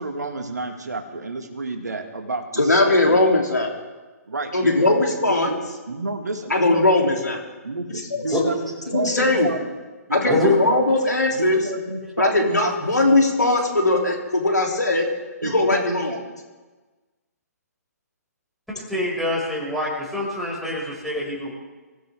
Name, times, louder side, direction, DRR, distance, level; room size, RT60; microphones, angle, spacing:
voice 1, 0.0-3.2 4.3-6.8 7.6-9.6 10.1-11.0 11.4-13.2 15.4-16.2, right 3 dB, 75° right, 4 dB, 2.2 m, -31 dB
voice 2, 2.6-3.7 4.5-5.5 6.5-7.4 8.9-9.5 10.1-11.6 12.2-15.0 15.4-16.1, left 2 dB, 85° left, 0 dB, 3.5 m, -19 dB
voice 3, 10.3-10.6 18.7-21.5, left 2 dB, ahead, -6 dB, 6.2 m, -24 dB
24.5 x 16.0 x 3.7 m, 1.2 s
figure-of-eight pair, 130°, 9 cm